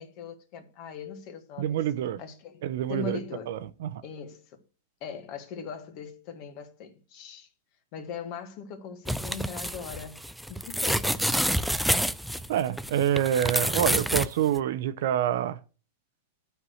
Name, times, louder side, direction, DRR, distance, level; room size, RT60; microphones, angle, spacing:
voice 1, 0.0-1.8 2.2-2.6 2.9-3.5 4.0-4.6 5.0-7.5 7.9-10.2 10.5-11.4, left 6 dB, 45° left, 1.8 m, -40 dB
voice 2, 1.6-2.2 2.6-3.2 3.5-4.0 12.5-15.6, right 10 dB, 65° right, 0.8 m, -27 dB
sound 1, 9.1-14.3 14.6-14.7, equal, ahead, 0.4 m, -28 dB
11.5 x 4.7 x 6.4 m
supercardioid pair, 150°, 0 cm